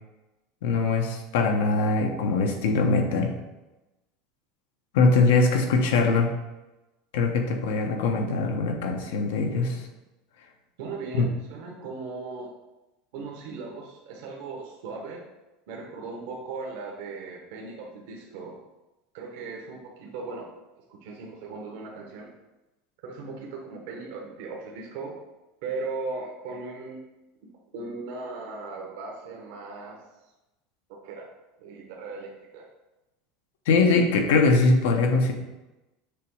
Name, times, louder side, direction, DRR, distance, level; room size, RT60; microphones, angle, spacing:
voice 1, 0.6-3.3 4.9-6.3 7.1-9.9 11.2-11.3 33.7-35.3, left 3 dB, 85° left, 3 dB, 1.0 m, -22 dB
voice 2, 10.8-12.5 13.1-15.2 15.7-18.6 19.1-20.5 20.7-22.3 23.0-25.2 25.6-27.0 27.7-30.0 30.9-31.3 31.6-32.7, right 3 dB, 70° right, -1 dB, 1.1 m, -37 dB
6.8 x 3.1 x 4.7 m, 1.0 s
supercardioid pair, 155°, 0 cm